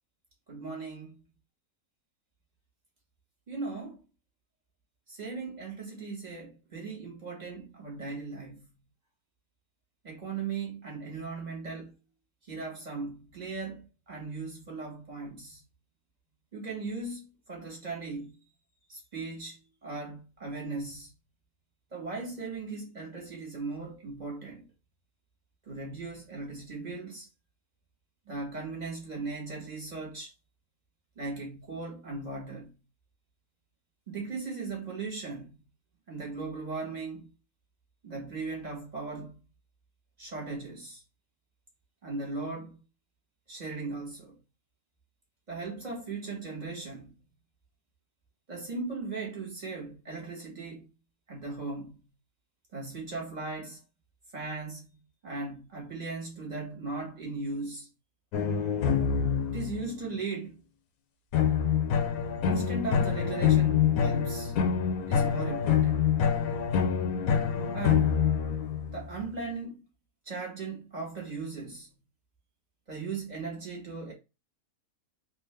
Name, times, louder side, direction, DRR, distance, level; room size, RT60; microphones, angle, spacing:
voice 1, 0.5-1.2 3.5-4.0 5.1-8.8 10.0-11.9 12.4-15.6 16.5-18.3 18.9-21.1 21.9-24.7 25.7-27.3 28.3-30.3 31.1-32.8 34.1-35.5 36.1-37.3 38.0-39.4 40.2-41.0 42.0-42.8 43.5-44.4 45.5-47.2 48.5-50.9 51.3-52.0 52.7-53.8 54.3-54.8 55.2-57.9 59.5-60.6 62.4-64.5 65.1-66.1 67.7-68.2 68.9-69.8 70.2-71.9 72.9-74.1, right 3 dB, 30° right, 1.4 m, -38 dB
sound 1, 58.3-60.0 61.3-69.1, left 7 dB, 80° left, 1.1 m, -26 dB
3.6 x 2.7 x 3.2 m
omnidirectional pair, 1.5 m